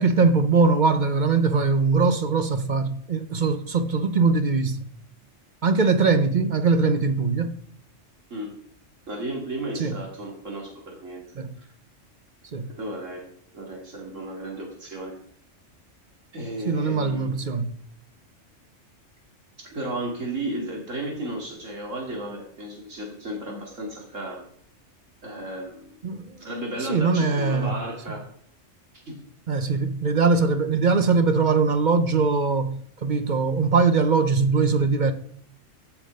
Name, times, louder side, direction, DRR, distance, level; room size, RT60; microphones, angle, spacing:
voice 1, 0.0-4.9 5.6-7.6 9.7-10.0 11.3-11.6 12.5-12.7 16.7-17.7 26.0-26.5 26.8-27.8 29.5-35.1, right 4 dB, 45° right, 0.8 m, -21 dB
voice 2, 9.1-11.2 11.6-11.7 12.8-13.3 13.5-15.1 16.3-17.3 19.7-24.4 25.2-26.0 26.4-28.2 29.1-29.2, right 1 dB, 75° right, 2.8 m, -34 dB
15.0 x 6.0 x 5.2 m
omnidirectional pair, 1.3 m